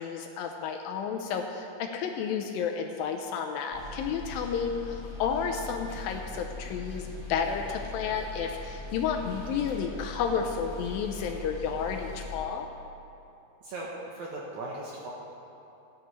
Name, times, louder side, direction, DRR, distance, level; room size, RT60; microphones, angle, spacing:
voice 1, 0.0-12.7, left 6 dB, 80° left, 3 dB, 2.2 m, -31 dB
sound 1, 3.7-12.4, left 3 dB, 45° left, 2.3 m, -41 dB
voice 2, 13.6-15.1, right 2 dB, 70° right, -3 dB, 1.9 m, -38 dB
17.5 x 10.0 x 3.1 m, 2.8 s
omnidirectional pair, 4.5 m